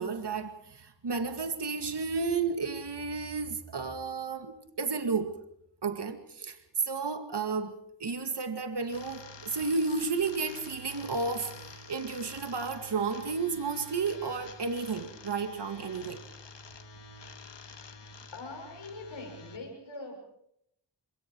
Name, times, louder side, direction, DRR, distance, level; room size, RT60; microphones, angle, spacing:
voice 1, 0.0-5.4 5.8-7.7 8.0-16.2, right 4 dB, 60° right, 7 dB, 2.3 m, -32 dB
sound 1, 8.8-19.6, left 2 dB, 65° left, 2.0 m, -48 dB
voice 2, 17.6-17.9 18.3-20.2, left 2 dB, 80° left, 2 dB, 6.4 m, -43 dB
25.5 x 23.0 x 4.7 m, 0.74 s
cardioid pair, 60°, 46 cm